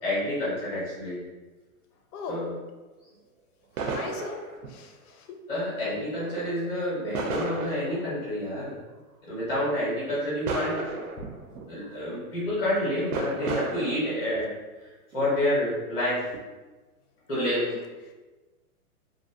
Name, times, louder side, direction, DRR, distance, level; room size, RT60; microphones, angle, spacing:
voice 1, 0.0-1.2 2.3-2.5 5.5-8.7 9.3-10.8 11.7-14.5 15.1-16.2 17.3-17.6, left 1 dB, 5° left, -9 dB, 0.5 m, -28 dB
sound 1, 3.8-4.8 6.2-6.7 7.1-8.1 8.6-8.7 10.1-11.7 12.5-12.7 13.1-14.5 15.1-15.8 16.3-16.4, right 3 dB, 90° right, 0.6 m, -34 dB
voice 2, 3.9-4.4 4.7-5.2 17.4-17.8, left 5 dB, 80° left, 3 dB, 0.6 m, -37 dB
2.6 x 2.0 x 2.6 m, 1.2 s
hypercardioid pair, 160°, 44 cm